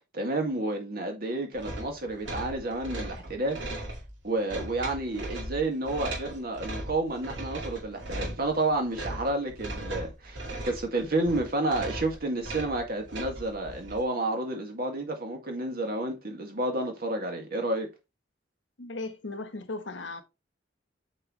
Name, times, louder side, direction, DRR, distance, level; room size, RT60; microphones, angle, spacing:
voice 1, 0.1-3.6 4.2-17.9, right 2 dB, 55° right, 2.1 m, -30 dB
sound 1, 1.6-14.0, right 1 dB, 80° right, 2.3 m, -38 dB
voice 2, 18.8-20.2, left 2 dB, 85° left, 1.1 m, -37 dB
7.7 x 4.6 x 3.2 m
head